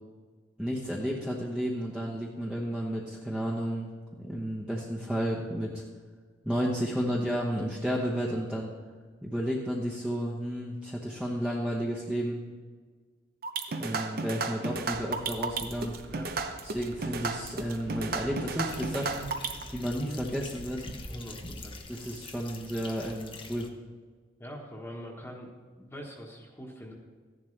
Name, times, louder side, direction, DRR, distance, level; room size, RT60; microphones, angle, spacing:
voice 1, 0.6-3.9 4.2-5.8 6.4-8.7 9.2-12.4 13.8-16.0 16.6-19.3 19.7-20.9 21.9-23.7, equal, 5° right, -4 dB, 1.0 m, -32 dB
sound 1, 13.4-19.6, right 4 dB, 55° right, 0.8 m, -33 dB
sound 2, 14.7-21.2, right 2 dB, 30° right, 0.5 m, -48 dB
sound 3, 18.7-23.7, left 3 dB, 30° left, 0.8 m, -45 dB
voice 2, 21.1-21.8 24.4-26.9, equal, 15° left, -2 dB, 1.4 m, -44 dB
14.5 x 11.0 x 3.3 m, 1.5 s
head